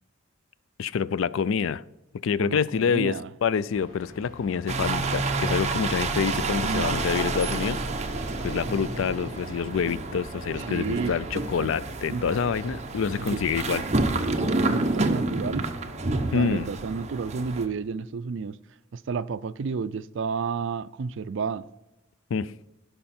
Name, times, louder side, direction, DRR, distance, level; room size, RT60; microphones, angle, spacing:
voice 1, 0.8-1.8 2.2-7.8 8.4-13.8 16.3-16.7 22.3-22.5, left 6 dB, 70° left, 0.4 m, -27 dB
voice 2, 2.4-3.3 6.6-6.9 10.6-11.1 11.6-11.7 12.1-12.2 13.3-13.4 14.4-15.7 16.3-18.6 18.9-21.7, right 5 dB, 60° right, 0.4 m, -31 dB
sound 1, 3.7-14.3, right 1 dB, 40° left, 2.6 m, -46 dB
sound 2, 4.7-17.7, right 2 dB, 35° right, 0.8 m, -29 dB
16.5 x 5.6 x 4.3 m
head